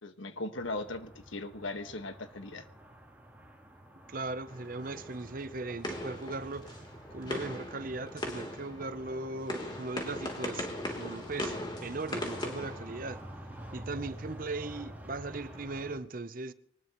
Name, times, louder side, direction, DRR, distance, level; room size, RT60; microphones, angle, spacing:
voice 1, 0.0-2.6, left 2 dB, 85° left, 1.6 m, -38 dB
sound 1, 0.6-16.0, equal, 10° right, 3.2 m, -48 dB
voice 2, 4.1-6.8 7.1-13.2 13.7-16.5, right 3 dB, 45° right, 0.7 m, -38 dB
sound 2, 4.5-13.6, left 1 dB, 25° left, 3.3 m, -40 dB
24.0 x 19.5 x 3.1 m
head